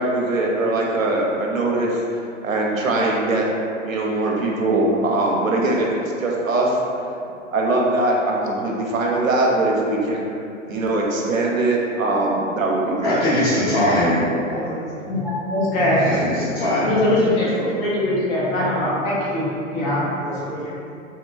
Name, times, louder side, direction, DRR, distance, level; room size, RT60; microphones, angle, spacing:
voice 1, 0.0-3.5 3.8-6.8 7.5-10.3 10.7-13.1, right 2 dB, 85° right, -2 dB, 0.6 m, -21 dB
voice 2, 13.0-14.2 16.0-16.9, left 1 dB, 50° left, -11 dB, 1.3 m, -20 dB
voice 3, 14.5-14.8 15.7-16.2 17.0-17.7 20.2-20.9, equal, 80° left, -11 dB, 1.4 m, -33 dB
voice 4, 15.1-16.2 16.8-17.5 17.8-20.1, left 1 dB, 30° left, -8 dB, 0.6 m, -21 dB
2.8 x 2.1 x 2.3 m, 2.6 s
figure-of-eight pair, 100°, 39 cm